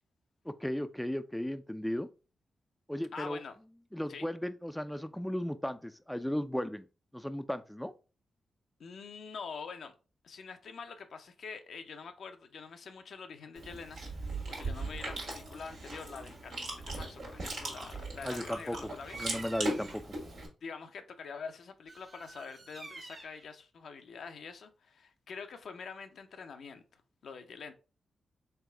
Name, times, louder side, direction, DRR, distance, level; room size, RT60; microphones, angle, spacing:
voice 1, 0.5-2.1 2.9-3.4 3.9-6.8 7.1-7.9 18.2-18.9 19.2-20.2, left 1 dB, 5° left, 0.4 m, -35 dB
voice 2, 3.1-3.6 4.1-4.3 8.8-9.9 10.2-19.2 20.6-27.7, left 5 dB, 70° left, 0.5 m, -45 dB
Chewing mastication, 13.5-20.5, right 2 dB, 80° right, 1.5 m, -39 dB
Bird vocalization bird call bird song, 19.0-20.0 21.9-23.5, right 3 dB, 45° right, 0.7 m, -48 dB
3.6 x 3.4 x 3.4 m
supercardioid pair, 40°, 0 cm